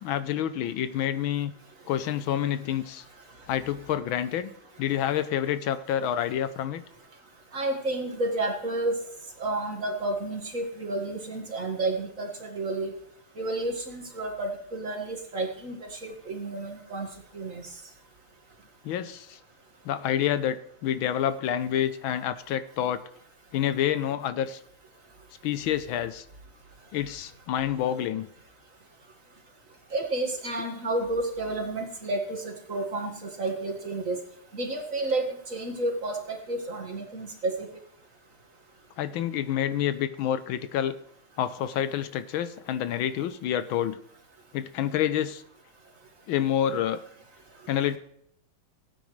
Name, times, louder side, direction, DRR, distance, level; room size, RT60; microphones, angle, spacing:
voice 1, 0.0-1.5 1.9-3.0 3.5-4.5 4.8-6.8 18.8-19.4 19.8-23.0 23.5-24.6 25.4-26.2 26.9-28.3 39.0-41.0 41.4-44.0 44.5-45.4 46.3-47.0 47.7-48.0, left 10 dB, 80° left, 13 dB, 1.4 m, -28 dB
voice 2, 7.5-9.0 9.4-12.9 13.4-17.1 17.3-17.6 29.9-34.2 34.5-37.7, right 2 dB, 40° right, 2 dB, 2.1 m, -31 dB
17.0 x 9.1 x 3.2 m, 0.70 s
omnidirectional pair, 2.3 m